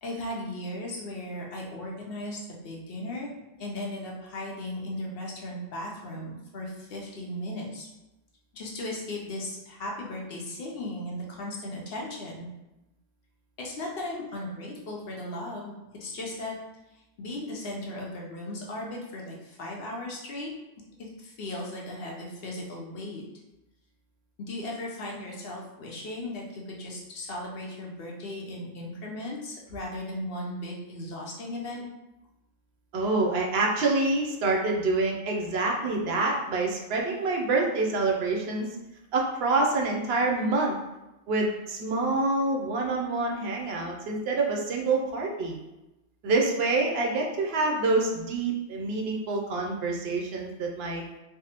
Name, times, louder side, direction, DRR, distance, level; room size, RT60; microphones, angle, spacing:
voice 1, 0.0-7.9 8.5-12.4 13.6-16.5 17.2-20.5 21.0-23.2 24.4-31.8, left 1 dB, 60° left, -2 dB, 0.7 m, -37 dB
voice 2, 32.9-38.7 39.1-40.8 41.3-45.6 46.2-51.0, right 3 dB, 65° right, 0 dB, 0.7 m, -26 dB
3.4 x 2.0 x 2.8 m, 0.99 s
omnidirectional pair, 1.3 m